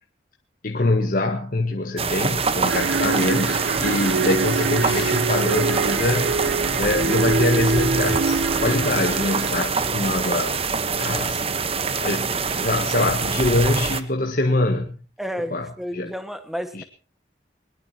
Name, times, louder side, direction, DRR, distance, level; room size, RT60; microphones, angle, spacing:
voice 1, 0.6-10.6 11.0-11.4 11.9-15.0 15.5-15.7 15.9-16.1 16.7-16.8, left 2 dB, 50° left, 3 dB, 1.6 m, -24 dB
sound 1, 2.0-14.0, right 5 dB, 35° right, 1.2 m, -25 dB
sound 2, 2.7-9.5, right 4 dB, 90° right, 0.7 m, -25 dB
Drawer open or close, 4.1-5.3 7.9-9.0, left 4 dB, 30° left, 3.8 m, -42 dB
voice 2, 15.2-16.8, equal, ahead, 8 dB, 1.7 m, -31 dB
21.5 x 21.0 x 3.0 m, 0.37 s
head